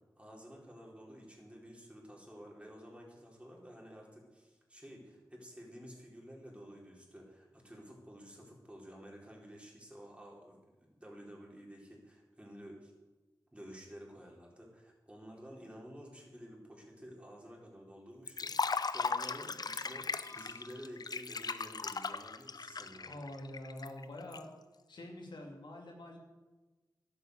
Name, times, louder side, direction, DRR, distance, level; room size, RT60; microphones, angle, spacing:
voice 1, 0.2-12.9 13.5-23.2, equal, 15° right, -2 dB, 4.5 m, -52 dB
Liquid, 18.3-24.4, left 4 dB, 60° left, 0.6 m, -37 dB
sound 1, 20.2-21.2, left 3 dB, 40° left, 3.1 m, -56 dB
voice 2, 23.0-24.5 24.9-26.2, left 1 dB, 90° left, 1 dB, 2.4 m, -46 dB
11.5 x 8.7 x 8.1 m, 1.2 s
cardioid pair, 55°, 8 cm